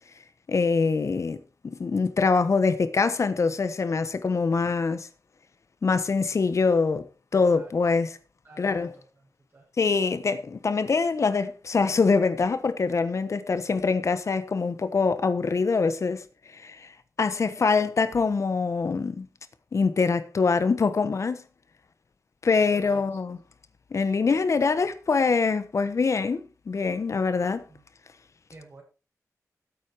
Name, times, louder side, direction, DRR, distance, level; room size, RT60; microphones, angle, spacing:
voice 1, 0.5-5.1 5.8-7.1 7.3-8.2 8.6-8.9 9.8-16.9 17.2-19.3 19.7-21.4 22.4-23.4 23.9-27.6, left 4 dB, 55° left, 1.2 m, -24 dB
voice 2, 7.3-7.8 8.4-9.7 22.7-23.3 27.7-27.8 28.5-28.8, right 2 dB, 40° right, 7.5 m, -51 dB
13.5 x 8.4 x 4.7 m
wide cardioid pair, 135°, 6 cm